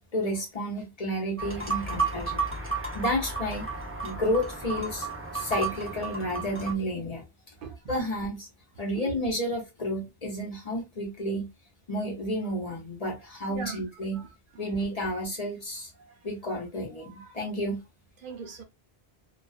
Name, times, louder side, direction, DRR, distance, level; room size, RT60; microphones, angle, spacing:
voice 1, 0.1-2.4 2.9-3.7 4.0-5.1 5.3-7.2 7.9-8.5 8.8-11.5 11.9-14.2 14.6-15.9 16.2-17.8, equal, 45° left, 0.7 m, -31 dB
sound 1, 1.4-6.7, right 4 dB, 20° right, 0.3 m, -32 dB
voice 2, 17.0-17.4 18.2-18.6, right 4 dB, 60° right, 0.7 m, -40 dB
2.3 x 2.3 x 2.3 m
omnidirectional pair, 1.1 m